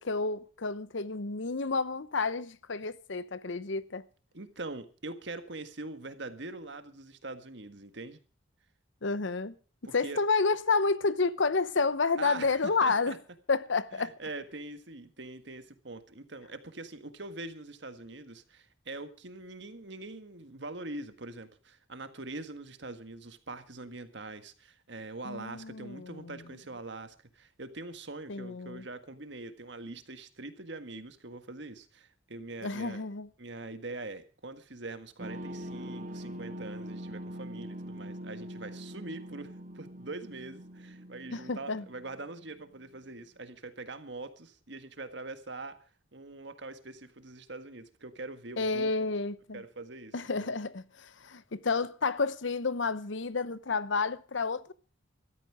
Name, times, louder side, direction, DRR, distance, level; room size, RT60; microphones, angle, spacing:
voice 1, 0.0-4.0 9.0-9.5 9.9-13.1 13.5-14.1 25.2-26.4 28.3-28.8 32.6-33.3 41.3-41.8 48.6-49.6 50.1-54.7, left 4 dB, 65° left, 0.8 m, -30 dB
voice 2, 4.3-8.2 9.8-10.2 12.2-13.2 13.9-33.0 33.4-45.8 46.1-49.1 49.5-50.5, right 2 dB, 60° right, 1.7 m, -43 dB
sound 1, 35.2-42.7, equal, 40° right, 1.2 m, -43 dB
15.0 x 13.5 x 4.8 m
head